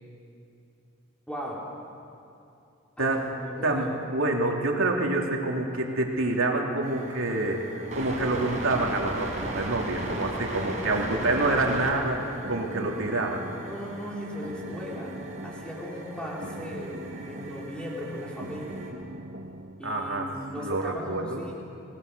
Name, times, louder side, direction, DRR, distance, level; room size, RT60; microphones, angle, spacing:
voice 1, 1.3-1.6 3.0-4.0 10.9-11.7 13.6-15.1 15.4-18.9 19.8-21.7, equal, 5° left, -4 dB, 3.7 m, -37 dB
voice 2, 3.0-3.3 3.6-7.6 7.9-12.2 12.5-13.4 19.8-20.3 20.5-21.4, right 2 dB, 85° right, 0 dB, 3.1 m, -27 dB
sound 1, 6.8-18.9, right 1 dB, 35° right, 4.5 m, -37 dB
sound 2, 12.1-19.8, right 1 dB, 60° right, 1.4 m, -42 dB
26.5 x 19.5 x 6.9 m, 2.7 s
head